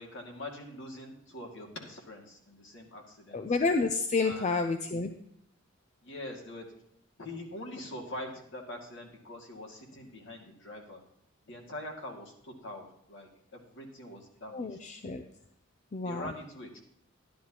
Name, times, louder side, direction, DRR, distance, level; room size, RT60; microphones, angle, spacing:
voice 1, 0.0-3.4 4.2-4.5 6.0-6.7 7.2-11.0 11.5-14.8 16.0-16.8, left 1 dB, 60° left, 1 dB, 2.2 m, -44 dB
voice 2, 3.3-5.1 14.5-15.2 15.9-16.3, left 4 dB, 35° left, 6 dB, 0.5 m, -29 dB
12.5 x 11.0 x 2.9 m, 0.71 s
head